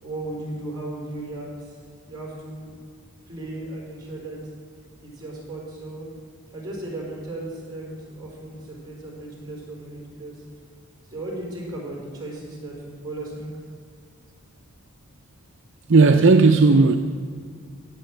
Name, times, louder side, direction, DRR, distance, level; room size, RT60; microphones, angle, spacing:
voice 1, 0.0-1.8 2.0-2.7 3.2-4.4 5.0-6.1 6.5-10.4 11.0-13.5, right 2 dB, 20° right, -3 dB, 4.7 m, -36 dB
voice 2, 15.9-17.0, right 3 dB, 55° right, 6 dB, 0.6 m, -14 dB
15.5 x 8.2 x 7.7 m, 2.1 s
head